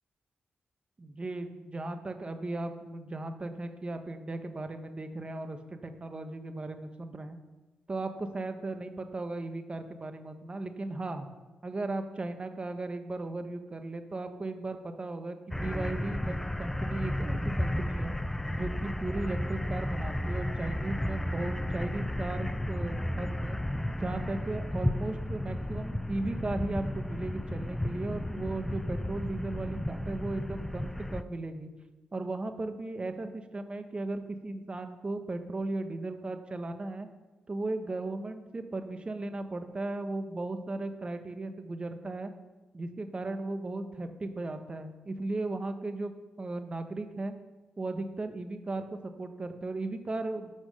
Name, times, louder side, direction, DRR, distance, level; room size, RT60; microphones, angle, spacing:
voice 1, 1.0-7.4 7.9-11.3 11.6-18.1 18.5-23.6 23.9-31.7 32.1-37.1 37.5-42.3 42.7-46.1 46.4-47.3 47.8-50.5, right 2 dB, 30° right, 7 dB, 1.2 m, -36 dB
sound 1, 15.5-31.2, left 1 dB, 10° left, 0.4 m, -33 dB
11.0 x 6.1 x 6.5 m, 1.1 s
cardioid pair, 85°, 3 cm